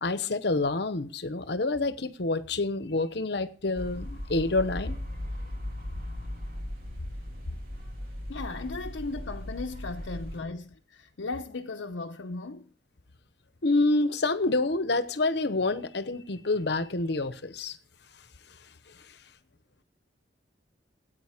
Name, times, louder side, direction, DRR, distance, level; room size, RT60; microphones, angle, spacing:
voice 1, 0.0-5.0 13.6-17.8, left 2 dB, 60° left, 0.9 m, -27 dB
sound 1, 3.7-10.4, left 1 dB, 50° right, 3.3 m, -37 dB
voice 2, 8.3-12.7, left 3 dB, 80° left, 0.8 m, -36 dB
14.0 x 9.1 x 5.0 m
head